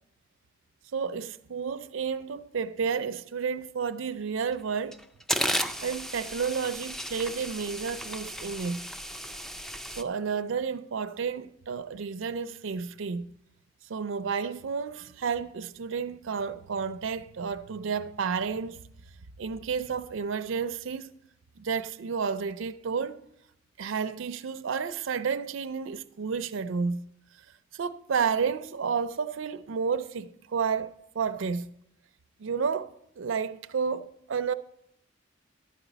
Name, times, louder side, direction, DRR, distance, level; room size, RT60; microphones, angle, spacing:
voice 1, 0.9-5.0 5.8-8.8 10.0-13.3 13.9-18.8 19.4-21.1 21.6-23.2 23.8-27.0 27.7-31.7 32.4-34.5, right 6 dB, 70° right, 0.4 m, -31 dB
sound 1, 4.4-4.5 4.9-10.0, equal, ahead, 0.3 m, -34 dB
12.0 x 4.9 x 8.1 m
head